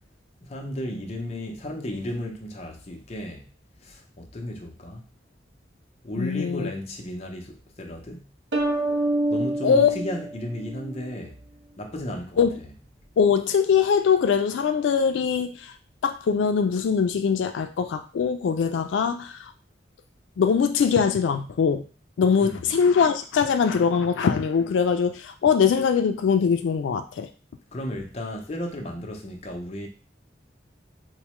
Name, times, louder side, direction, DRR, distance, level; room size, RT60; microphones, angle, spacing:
voice 1, 0.4-3.5 3.8-5.0 6.0-8.2 9.3-11.4 11.8-12.4 22.4-22.6 27.7-29.9, left 1 dB, 35° left, 0.6 m, -34 dB
voice 2, 6.2-6.7 9.6-10.0 12.4-12.6 13.2-15.7 16.0-19.5 20.4-21.8 22.2-27.3, left 6 dB, 90° left, 0.3 m, -22 dB
sound 1, 8.5-11.2, right 1 dB, 80° right, 0.7 m, -27 dB
4.5 x 2.1 x 3.0 m
head